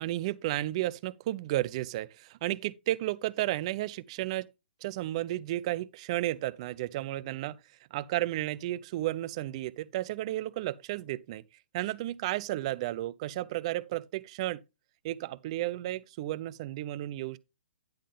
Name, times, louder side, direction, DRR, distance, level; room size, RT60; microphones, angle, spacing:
voice 1, 0.0-4.5 4.8-7.6 7.9-11.4 11.7-14.6 15.0-17.4, right 15 dB, 35° right, 0.4 m, -33 dB
10.5 x 3.7 x 5.0 m
hypercardioid pair, 155°, 6 cm